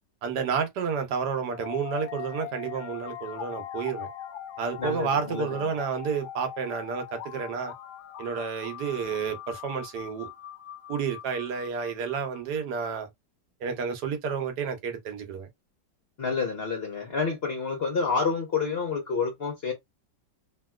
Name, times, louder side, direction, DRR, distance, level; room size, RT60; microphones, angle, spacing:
voice 1, 0.2-4.1 4.6-7.7 8.2-10.3 10.9-13.1 13.6-15.5, right 6 dB, 70° right, 1.2 m, -30 dB
sound 1, 1.5-12.4, left 11 dB, 70° left, 1.1 m, -41 dB
voice 2, 4.8-5.5 16.2-19.7, left 5 dB, 50° left, 0.8 m, -28 dB
2.8 x 2.8 x 2.3 m
omnidirectional pair, 1.9 m